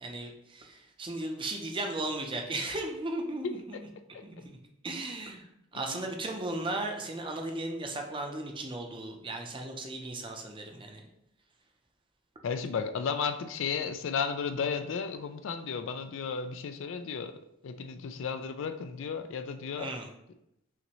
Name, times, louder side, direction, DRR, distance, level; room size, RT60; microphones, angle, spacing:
voice 1, 0.0-3.8 4.2-4.6 4.8-5.4 5.7-11.1 19.8-20.0, right 2 dB, 25° right, 3 dB, 0.6 m, -36 dB
voice 2, 3.4-3.8 4.1-4.2 5.7-6.1 12.4-17.4 17.6-19.9, left 6 dB, 65° left, 9 dB, 0.4 m, -34 dB
5.7 x 2.6 x 3.0 m, 0.80 s
head